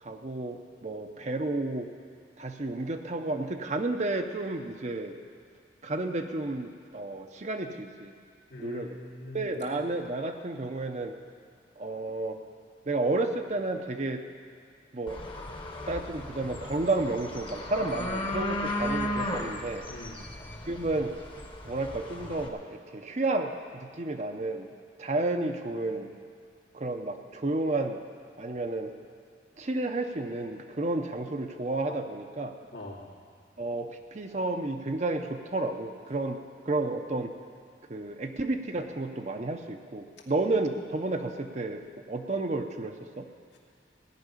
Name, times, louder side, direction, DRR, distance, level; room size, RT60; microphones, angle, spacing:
voice 1, 0.0-1.9 2.4-5.2 5.8-8.1 8.6-9.0 9.3-11.1 11.8-12.4 12.9-14.2 14.9-15.2 15.9-19.9 20.7-21.1 21.6-24.7 25.0-26.1 26.7-28.0 28.4-28.9 29.6-32.5 33.6-36.4 36.6-37.3 37.9-41.8 42.1-43.3, right 2 dB, 40° right, 5 dB, 0.7 m, -31 dB
voice 2, 8.5-9.5 19.9-20.3 32.7-33.1 43.5-43.6, left 1 dB, 80° left, -4 dB, 2.6 m, -43 dB
sound 1, 15.1-22.5, left 1 dB, 30° left, 1.1 m, -35 dB
17.5 x 6.0 x 9.9 m, 2.3 s
head